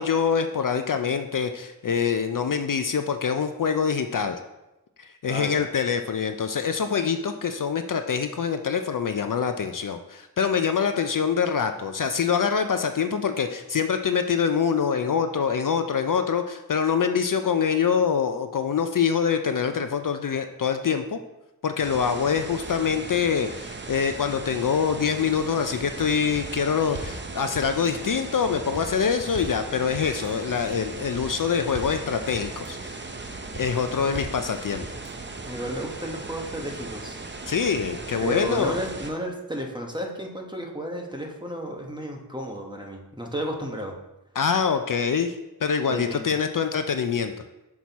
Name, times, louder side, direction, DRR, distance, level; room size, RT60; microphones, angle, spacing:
voice 1, 0.0-4.4 5.0-21.2 21.6-33.0 33.5-34.9 37.5-38.8 44.4-45.4 45.6-47.3, left 6 dB, 55° left, 8 dB, 0.5 m, -25 dB
voice 2, 5.3-5.6 34.0-34.2 35.4-37.2 38.2-43.9 45.9-46.4, equal, 10° right, 1 dB, 1.1 m, -33 dB
sound 1, 21.8-39.1, right 3 dB, 30° right, 0.6 m, -38 dB
sound 2, 26.0-26.5 26.8-27.2 27.5-28.1 28.4-28.9 29.2-29.6 29.9-30.5 30.8-31.3 31.6-32.0 32.3-32.9 33.2-33.7 34.0-34.4 34.7-35.3 35.6-35.7, right 2 dB, 55° right, 1.2 m, -39 dB
6.3 x 5.9 x 4.1 m, 0.98 s
wide cardioid pair, 85°, 39 cm